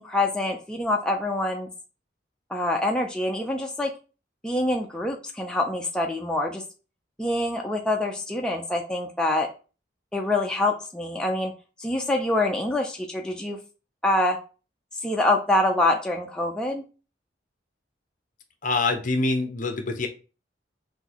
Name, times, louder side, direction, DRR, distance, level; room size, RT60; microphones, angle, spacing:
voice 1, 0.0-1.7 2.5-3.9 4.4-6.6 7.2-9.5 10.1-11.5 11.8-13.6 14.0-14.4 15.0-16.8, left 1 dB, 5° left, 0 dB, 0.5 m, -25 dB
voice 2, 18.6-20.1, left 3 dB, 45° left, 6 dB, 0.7 m, -25 dB
5.9 x 2.7 x 2.9 m, 0.34 s
head